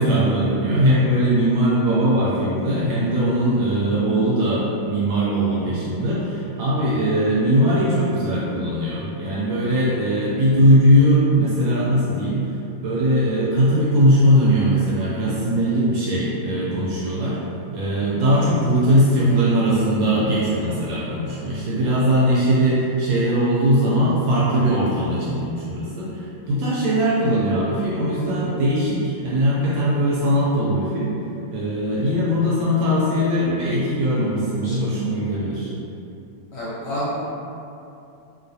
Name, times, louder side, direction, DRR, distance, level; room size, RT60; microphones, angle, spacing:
voice 1, 0.0-12.6 12.8-17.4 17.7-31.1 31.5-35.7, equal, 75° right, -7 dB, 1.2 m, -20 dB
voice 2, 34.5-34.9 36.5-37.1, equal, 65° left, -9 dB, 1.2 m, -30 dB
3.0 x 2.8 x 2.6 m, 2.7 s
omnidirectional pair, 2.4 m